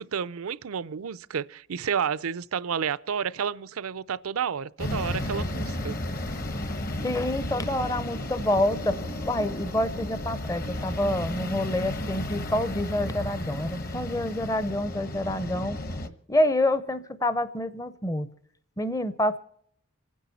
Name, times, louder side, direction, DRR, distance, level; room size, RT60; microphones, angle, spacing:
voice 1, 0.0-6.0, right 7 dB, 85° right, 0.5 m, -30 dB
sound 1, 4.8-16.1, left 1 dB, 45° left, 1.1 m, -33 dB
voice 2, 7.0-9.0 9.3-15.8 16.3-18.3 18.8-19.4, left 1 dB, 15° left, 0.6 m, -27 dB
26.5 x 10.0 x 4.1 m
head